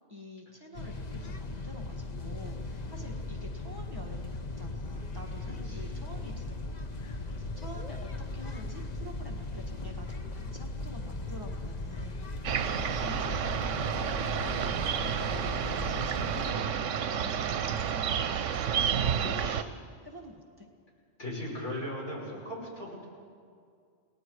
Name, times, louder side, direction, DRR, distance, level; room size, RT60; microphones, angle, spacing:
voice 1, 0.1-4.2 4.6-18.0 19.1-19.5 20.0-20.7, left 1 dB, 20° right, 0 dB, 1.7 m, -48 dB
sound 1, 0.8-16.5, left 2 dB, 35° left, 1.0 m, -38 dB
voice 2, 5.4-5.9 19.2-19.8 21.2-23.1, left 1 dB, 75° left, -5 dB, 6.7 m, -39 dB
sound 2, 12.4-19.6, right 8 dB, 75° right, 1.1 m, -30 dB
29.0 x 19.0 x 4.8 m, 2.2 s
omnidirectional pair, 1.3 m